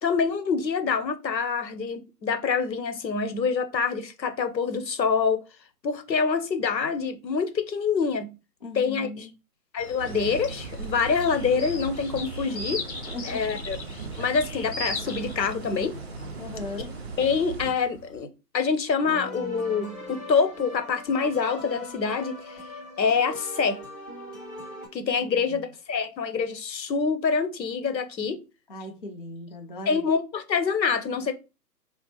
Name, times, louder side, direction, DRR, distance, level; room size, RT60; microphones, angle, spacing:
voice 1, 0.0-5.4 5.8-8.3 8.7-9.3 9.7-12.8 13.2-13.8 14.2-15.9 17.2-18.3 18.5-22.6 23.0-23.8 24.9-28.4 29.9-31.3, left 5 dB, 85° left, 0.8 m, -26 dB
voice 2, 8.6-9.3 12.5-12.7 13.1-13.4 16.4-17.0 25.2-25.6 28.7-30.0, left 2 dB, 35° left, 0.4 m, -38 dB
sound 1, 9.8-18.2, left 2 dB, 60° left, 1.1 m, -39 dB
sound 2, 10.0-17.7, right 4 dB, 45° right, 0.4 m, -38 dB
sound 3, 19.0-24.9, left 2 dB, ahead, 0.8 m, -40 dB
2.8 x 2.0 x 3.1 m
figure-of-eight pair, 135°, 50 cm